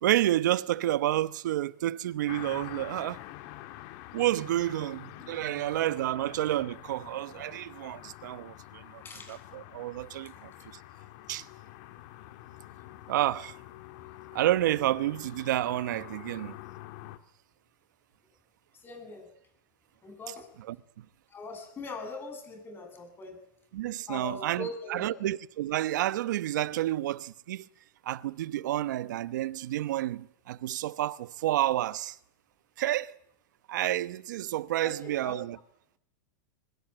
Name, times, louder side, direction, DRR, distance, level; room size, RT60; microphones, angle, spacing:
voice 1, 0.0-3.2 4.1-9.0 9.3-10.5 11.3-11.5 13.1-13.6 14.3-16.5 20.7-21.0 23.7-27.7 28.0-32.2 32.8-33.1 33.7-35.6, right 14 dB, 75° right, 1.1 m, -30 dB
sound 1, 2.3-17.2, left 16 dB, 50° left, 2.1 m, -47 dB
voice 2, 9.0-9.4 18.7-19.3 20.0-20.5 21.3-23.4 24.1-25.2 34.8-35.3, left 2 dB, 20° left, 8.0 m, -41 dB
23.5 x 21.0 x 9.1 m
hypercardioid pair, 130°, 10 cm